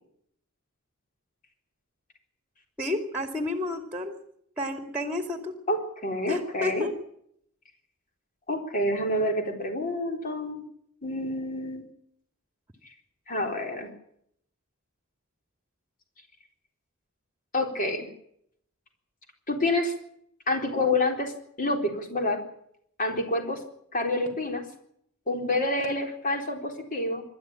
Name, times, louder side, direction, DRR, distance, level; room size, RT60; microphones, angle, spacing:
voice 1, 2.8-4.2 4.6-5.5 6.3-6.9, left 1 dB, 10° right, 6 dB, 2.5 m, -31 dB
voice 2, 5.7-6.9 8.5-10.6 11.0-11.8 13.3-13.9 17.5-18.1 19.5-19.9 20.5-21.3 21.6-22.4 23.0-23.6 23.9-24.7 25.3-27.2, left 1 dB, 40° left, 3 dB, 4.0 m, -28 dB
25.5 x 13.0 x 8.9 m, 0.70 s
head